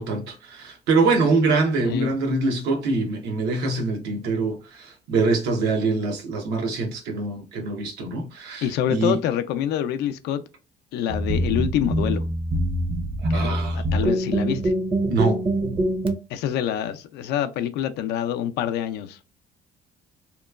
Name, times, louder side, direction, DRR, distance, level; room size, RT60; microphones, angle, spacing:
voice 1, 0.0-9.2 13.3-13.8 15.1-15.4, right 3 dB, 85° right, 0.8 m, -24 dB
voice 2, 8.6-10.4 10.9-12.2 13.3-14.7 16.3-19.2, left 10 dB, 80° left, 0.4 m, -26 dB
sound 1, 11.1-16.1, right 1 dB, 30° right, 0.5 m, -24 dB
2.9 x 2.2 x 2.3 m
cardioid pair, 110°, 17 cm